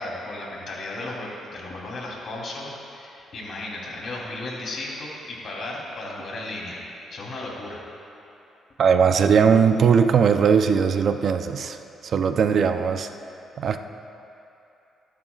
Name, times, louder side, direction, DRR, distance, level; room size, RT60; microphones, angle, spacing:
voice 1, 0.0-7.8, left 2 dB, 55° left, -3 dB, 3.4 m, -35 dB
voice 2, 8.8-13.1 13.6-13.8, right 6 dB, 55° right, 8 dB, 0.6 m, -19 dB
24.0 x 11.5 x 2.4 m, 2.8 s
cardioid pair, 95°, 0 cm